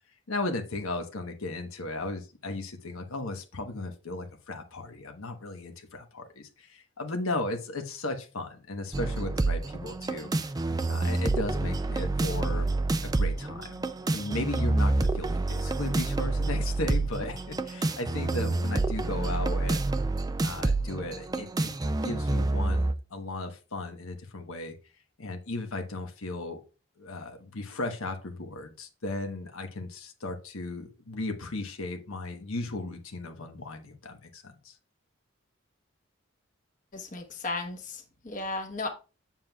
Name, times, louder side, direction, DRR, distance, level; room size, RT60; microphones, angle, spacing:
voice 1, 0.3-10.3 10.9-12.7 13.0-13.8 14.1-19.9 20.4-21.7 22.0-24.8 25.2-26.6 27.0-34.8, left 2 dB, 80° left, 5 dB, 1.1 m, -36 dB
sound 1, 8.9-22.9, right 2 dB, 20° right, 0.3 m, -28 dB
voice 2, 36.9-38.9, left 3 dB, 35° left, 4 dB, 1.1 m, -35 dB
7.4 x 7.4 x 2.3 m, 0.32 s
head